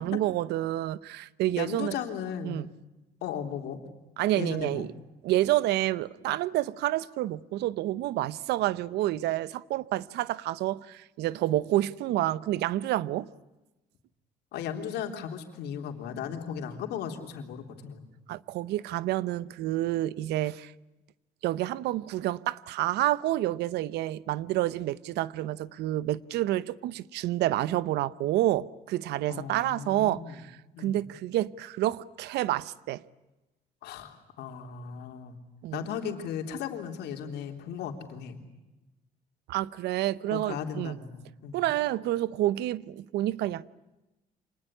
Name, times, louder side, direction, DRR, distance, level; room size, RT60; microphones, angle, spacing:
voice 1, 0.0-2.0 2.4-2.6 4.2-4.9 5.2-13.3 18.3-20.7 21.4-33.0 35.6-35.9 39.5-41.0 41.5-43.7, right 15 dB, 80° right, 0.8 m, -29 dB
voice 2, 1.6-2.6 3.2-3.8 4.3-4.9 14.5-18.1 29.3-30.5 30.7-31.0 33.8-35.4 35.7-38.4 40.3-41.6, left 8 dB, 80° left, 3.5 m, -36 dB
26.0 x 20.0 x 9.9 m
cardioid pair, 110°, 17 cm